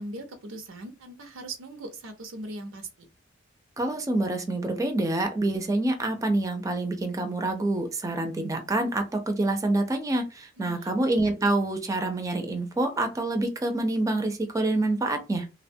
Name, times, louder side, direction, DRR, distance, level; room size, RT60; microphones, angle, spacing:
voice 1, 0.0-3.1 10.6-11.1, right 2 dB, 90° right, 0.6 m, -40 dB
voice 2, 3.8-15.5, right 2 dB, 15° right, 0.4 m, -27 dB
2.8 x 2.1 x 2.6 m
head